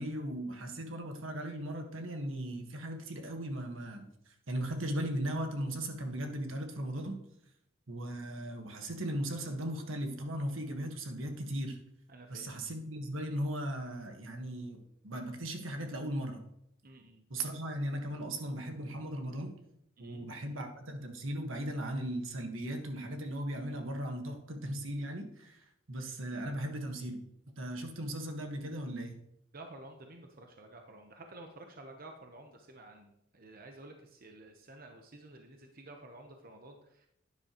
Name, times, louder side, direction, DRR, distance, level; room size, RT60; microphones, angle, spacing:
voice 1, 0.0-4.1 4.5-7.2 7.9-11.8 12.3-16.4 17.3-19.5 20.0-27.2 27.6-29.2, right 1 dB, 80° right, 4 dB, 1.5 m, -37 dB
voice 2, 12.1-12.6 16.8-17.2 20.0-20.6 29.5-37.1, right 2 dB, 45° right, 4 dB, 1.0 m, -52 dB
12.0 x 9.9 x 3.0 m, 0.77 s
head